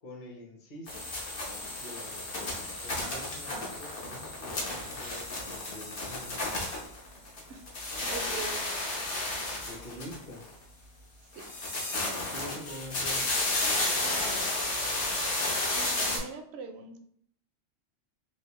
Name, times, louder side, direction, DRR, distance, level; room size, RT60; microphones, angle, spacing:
voice 1, 0.0-1.1 1.8-2.5 2.8-6.5 9.7-10.4 12.3-13.4, left 1 dB, 45° left, -1 dB, 0.9 m, -46 dB
sound 1, 0.9-7.4 7.7-10.5 11.3-16.2, left 2 dB, 65° left, 1.2 m, -32 dB
voice 2, 8.0-8.6 11.4-11.5 15.7-17.0, right 4 dB, 65° right, 6 dB, 0.7 m, -41 dB
3.3 x 2.7 x 2.9 m, 0.65 s
omnidirectional pair, 1.3 m